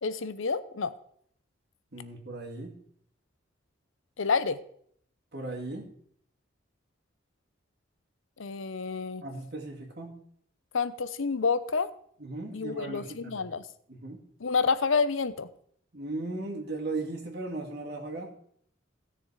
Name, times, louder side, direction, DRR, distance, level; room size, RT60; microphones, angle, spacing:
voice 1, 0.0-0.9 4.2-4.6 8.4-9.2 10.7-11.9 12.5-13.6 14.4-15.5, left 5 dB, 75° left, 15 dB, 0.7 m, -28 dB
voice 2, 1.9-2.7 5.3-5.9 9.2-10.2 12.2-13.4 13.9-14.2 15.9-18.3, right 2 dB, 50° right, -1 dB, 2.3 m, -37 dB
16.5 x 6.7 x 4.8 m, 0.66 s
head